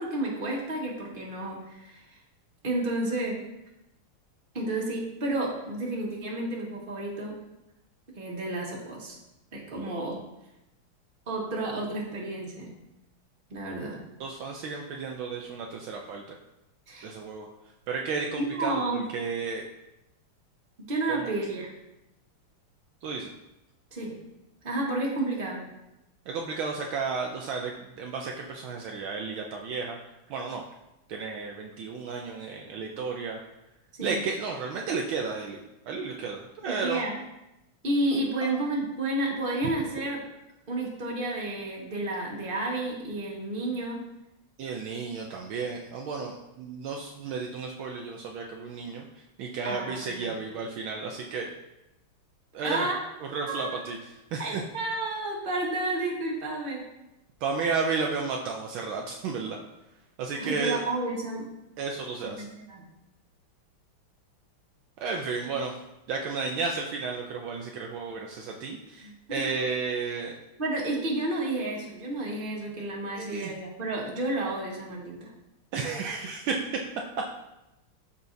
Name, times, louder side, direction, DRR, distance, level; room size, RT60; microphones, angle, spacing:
voice 1, 0.0-2.0 2.6-3.3 4.5-7.3 8.2-9.2 9.5-10.2 11.3-12.7 13.5-14.0 16.9-17.1 18.4-19.0 20.9-21.7 23.9-24.1 24.6-25.6 33.9-34.3 36.7-37.1 37.8-40.2 40.7-44.0 49.6-50.3 52.6-53.0 53.5-53.8 54.4-56.8 60.4-61.5 62.2-62.8 69.0-69.1 70.6-75.3, right 2 dB, 25° right, -3 dB, 1.4 m, -31 dB
voice 2, 14.2-16.4 17.0-17.5 17.9-19.6 21.1-21.3 23.0-23.3 26.3-30.0 30.3-30.6 31.1-33.4 34.0-35.6 35.8-37.0 38.4-38.5 39.6-39.7 44.6-51.6 52.5-52.9 53.2-54.6 57.4-59.6 60.2-60.8 61.8-62.5 65.0-65.8 66.1-70.3 73.2-73.5 75.7-76.9, right 4 dB, 75° right, 1 dB, 1.3 m, -33 dB
12.5 x 4.2 x 2.6 m, 0.92 s
omnidirectional pair, 2.4 m